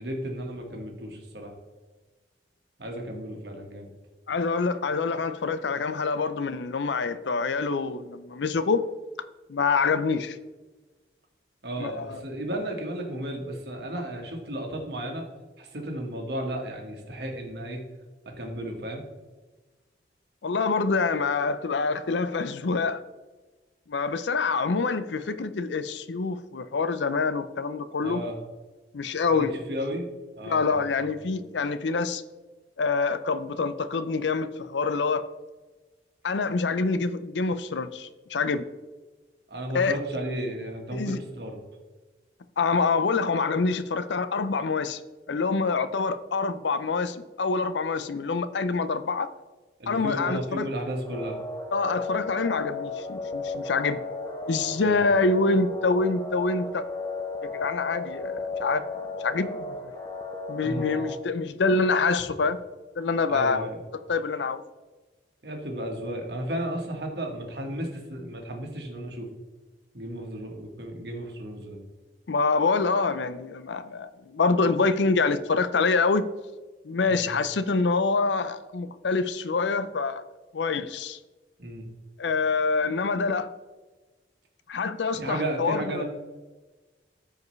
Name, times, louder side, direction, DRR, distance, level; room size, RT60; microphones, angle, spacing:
voice 1, 0.0-1.5 2.8-3.9 11.6-15.2 15.6-17.8 18.4-19.0 28.0-28.4 29.3-30.1 30.3-31.1 39.5-41.6 49.8-51.4 54.8-55.0 60.6-60.9 63.3-63.8 65.4-69.3 69.9-71.8 77.1-77.3 81.6-81.9 85.1-86.0, right 1 dB, 65° right, 1.6 m, -34 dB
voice 2, 4.3-8.9 9.5-10.4 11.8-12.2 20.4-23.0 23.9-28.2 28.9-29.6 30.4-32.2 32.8-35.3 36.2-38.7 39.7-40.0 40.9-41.2 42.6-45.0 45.3-49.3 49.9-50.6 51.7-54.0 54.5-56.9 57.4-58.8 59.2-59.8 60.5-62.6 63.0-63.7 64.1-64.6 72.3-76.3 76.8-80.2 80.5-81.2 82.2-83.5 84.7-86.0, left 4 dB, 85° left, 0.5 m, -26 dB
sound 1, 51.0-61.2, left 3 dB, 20° left, 0.7 m, -35 dB
14.0 x 4.8 x 3.2 m
head